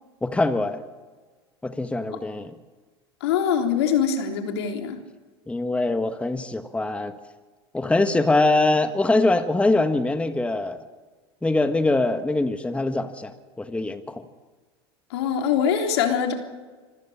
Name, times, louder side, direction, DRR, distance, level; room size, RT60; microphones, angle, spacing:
voice 1, 0.2-0.8 1.6-2.5 5.5-7.1 7.7-10.8 11.4-14.3, left 2 dB, 10° left, 9 dB, 1.5 m, -23 dB
voice 2, 3.2-5.0 15.1-16.3, left 7 dB, 75° left, 4 dB, 3.5 m, -23 dB
26.0 x 15.0 x 8.7 m, 1.4 s
hypercardioid pair, 90°, 14 cm